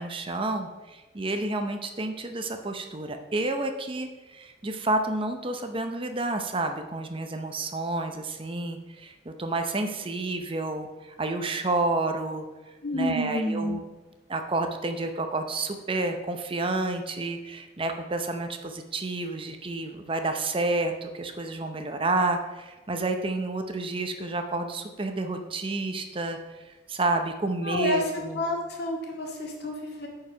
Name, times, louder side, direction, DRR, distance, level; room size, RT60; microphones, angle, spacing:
voice 1, 0.0-12.5 12.9-13.8 14.3-28.5, right 2 dB, 30° right, 6 dB, 0.7 m, -30 dB
voice 2, 12.8-13.9 27.6-28.0 28.4-30.1, left 1 dB, 60° left, 0 dB, 2.0 m, -29 dB
9.3 x 4.8 x 5.6 m, 1.1 s
head